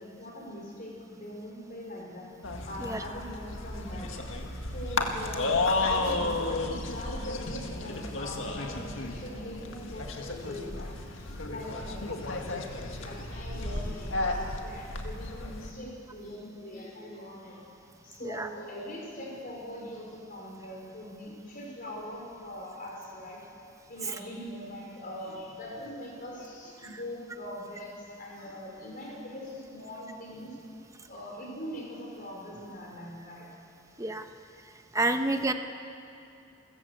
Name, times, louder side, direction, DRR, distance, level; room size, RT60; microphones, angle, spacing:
voice 1, 0.0-2.3 2.6-4.2 4.5-23.4 23.9-30.6 31.1-33.5, left 1 dB, 40° left, -2 dB, 4.8 m, -42 dB
sound 1, 2.4-15.7, left 2 dB, 70° left, 1.9 m, -33 dB
voice 2, 34.9-35.5, right 2 dB, 15° right, 6 dB, 1.1 m, -28 dB
29.0 x 15.0 x 8.1 m, 2.6 s
head